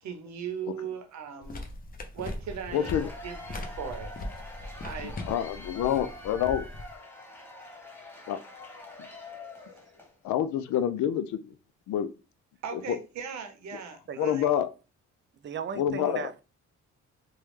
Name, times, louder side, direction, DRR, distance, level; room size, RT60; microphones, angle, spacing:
voice 1, 0.0-1.6 2.1-4.1 4.8-5.2 12.6-14.5, right 7 dB, 65° right, 0.8 m, -38 dB
sound 1, 1.4-6.9, left 2 dB, 30° left, 0.6 m, -40 dB
Cheering / Applause / Crowd, 2.5-10.2, left 1 dB, 5° left, 0.9 m, -45 dB
voice 2, 2.7-3.1 5.0-6.7 8.3-8.4 10.2-11.5 11.9-12.1 12.9-13.0 14.2-14.7 15.8-16.3, left 10 dB, 75° left, 0.4 m, -27 dB
voice 3, 15.4-16.4, right 6 dB, 40° right, 0.4 m, -36 dB
3.1 x 2.2 x 3.1 m
cardioid pair, 90°, 30 cm